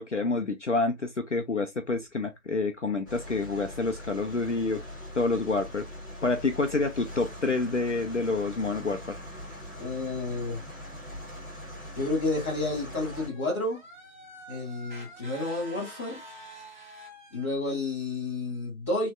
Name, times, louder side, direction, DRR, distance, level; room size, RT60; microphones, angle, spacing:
voice 1, 0.0-4.8 5.1-5.9 6.2-9.2, left 3 dB, 55° left, 0.6 m, -28 dB
sound 1, 3.1-13.3, equal, 15° right, 1.2 m, -42 dB
voice 2, 9.8-10.6 11.9-13.8 14.5-16.2 17.3-19.1, left 2 dB, 10° left, 1.5 m, -30 dB
sound 2, 12.3-17.5, right 1 dB, 35° right, 1.0 m, -47 dB
4.0 x 3.1 x 2.4 m
figure-of-eight pair, 165°, 43 cm